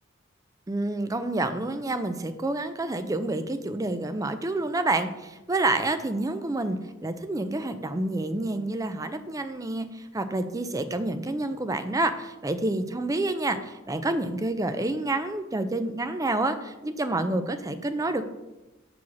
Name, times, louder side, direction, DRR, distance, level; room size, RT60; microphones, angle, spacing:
voice 1, 0.7-18.2, right 2 dB, 15° right, 9 dB, 0.5 m, -28 dB
5.5 x 4.9 x 6.1 m, 1.0 s
head